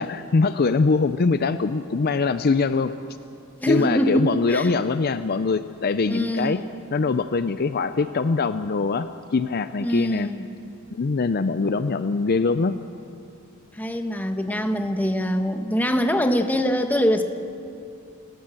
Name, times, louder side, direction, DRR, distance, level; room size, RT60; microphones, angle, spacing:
voice 1, 0.0-2.9 3.7-6.6 6.9-10.3 10.9-12.8, left 4 dB, 45° left, 11 dB, 0.5 m, -23 dB
voice 2, 3.6-4.8 6.1-6.7 9.8-10.4 13.7-17.2, equal, 10° left, 6 dB, 1.2 m, -23 dB
29.0 x 14.5 x 7.7 m, 2.6 s
head